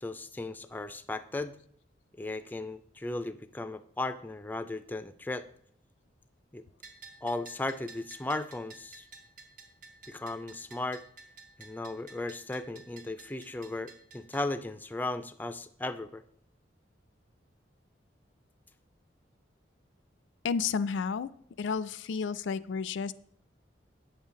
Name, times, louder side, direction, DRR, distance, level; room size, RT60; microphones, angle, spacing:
voice 1, 0.0-1.6 2.2-5.5 6.5-6.6 7.2-9.1 10.1-11.0 11.6-16.2, left 2 dB, 10° left, 11 dB, 0.3 m, -36 dB
Bell, 6.8-14.4, right 3 dB, 45° right, 1.2 m, -52 dB
voice 2, 20.4-21.3 21.6-23.1, left 5 dB, 80° left, 16 dB, 0.4 m, -31 dB
8.8 x 7.3 x 3.7 m, 0.65 s
head